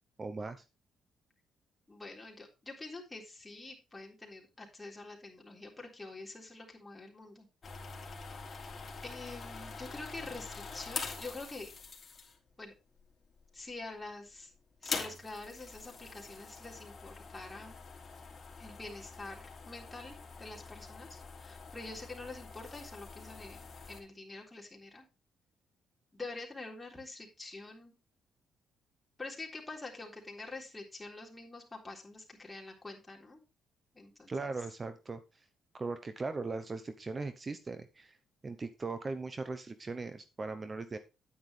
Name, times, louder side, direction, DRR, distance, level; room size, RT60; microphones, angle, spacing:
voice 1, 0.2-0.6 34.3-35.2 35.7-38.2 38.4-41.0, right 3 dB, 30° right, 10 dB, 0.8 m, -39 dB
voice 2, 1.9-7.5 8.1-8.5 9.0-11.7 12.6-12.7 13.5-14.5 14.8-17.8 18.6-25.1 26.1-27.9 29.2-33.4 33.9-34.3, left 2 dB, 15° left, -1 dB, 3.6 m, -46 dB
sound 1, 7.6-12.5 13.3-13.7 14.0-14.1 14.7-24.0, left 4 dB, 40° left, 2.9 m, -45 dB
9.7 x 9.3 x 3.3 m, 0.29 s
cardioid pair, 90°, 0 cm